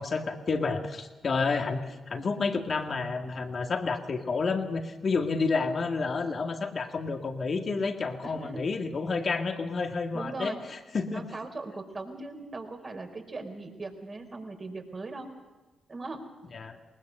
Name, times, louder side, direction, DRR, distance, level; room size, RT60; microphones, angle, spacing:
voice 1, 0.0-11.2 16.5-16.8, left 4 dB, 50° left, 5 dB, 2.1 m, -30 dB
voice 2, 8.2-8.6 10.1-10.6 11.1-15.3 15.9-16.3, right 3 dB, 40° right, 3 dB, 4.4 m, -39 dB
20.5 x 20.0 x 6.7 m, 1.2 s
hypercardioid pair, 45°, 0 cm